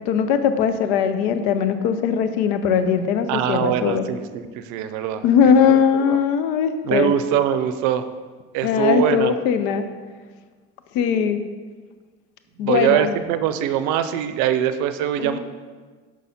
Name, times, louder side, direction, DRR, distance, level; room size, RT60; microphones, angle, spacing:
voice 1, 0.1-4.1 5.2-7.1 8.6-9.9 10.9-11.4 12.6-13.1 15.2-15.4, left 7 dB, 80° left, 9 dB, 0.6 m, -20 dB
voice 2, 3.3-6.2 6.8-8.1 8.5-9.3 12.6-15.4, right 10 dB, 75° right, 11 dB, 0.5 m, -23 dB
6.2 x 5.5 x 4.1 m, 1.5 s
hypercardioid pair, 60°, 30 cm